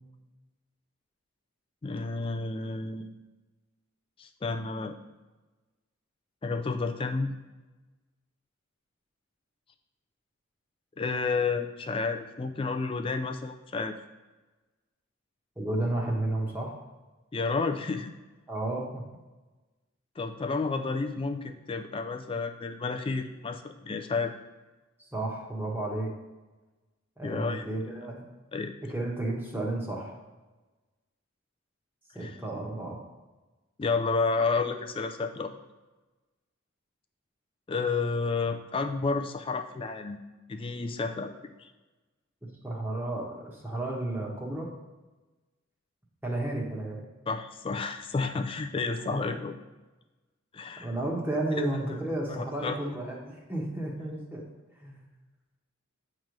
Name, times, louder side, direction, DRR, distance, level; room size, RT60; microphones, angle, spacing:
voice 1, 1.8-3.1 4.2-4.9 6.4-7.3 11.0-13.9 17.3-18.1 20.2-24.3 27.2-27.6 28.5-28.7 32.2-32.3 33.8-35.5 37.7-40.2 40.5-41.3 41.6-41.7 47.3-49.6 50.5-50.9 51.5-51.6 52.3-52.8, left 4 dB, 25° left, 7 dB, 0.3 m, -31 dB
voice 2, 15.6-16.8 18.5-19.0 25.1-26.1 27.2-28.2 28.9-30.2 32.1-33.0 42.6-44.7 46.2-47.0 49.1-49.2 50.8-54.4 54.8-55.0, right 1 dB, 10° right, -2 dB, 1.0 m, -32 dB
8.6 x 3.1 x 5.1 m, 1.2 s
head